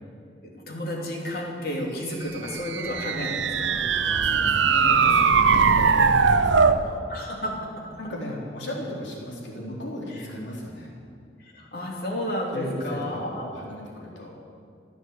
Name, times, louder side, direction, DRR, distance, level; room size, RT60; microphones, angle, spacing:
voice 1, 0.5-3.8 7.1-8.0 11.4-13.5, left 1 dB, 55° left, -1 dB, 3.0 m, -32 dB
sound 1, 2.4-6.8, right 5 dB, 85° right, 0.7 m, -20 dB
voice 2, 3.6-7.0 8.0-10.9 12.5-14.4, equal, 75° left, -3 dB, 3.9 m, -36 dB
15.5 x 9.6 x 8.2 m, 2.4 s
head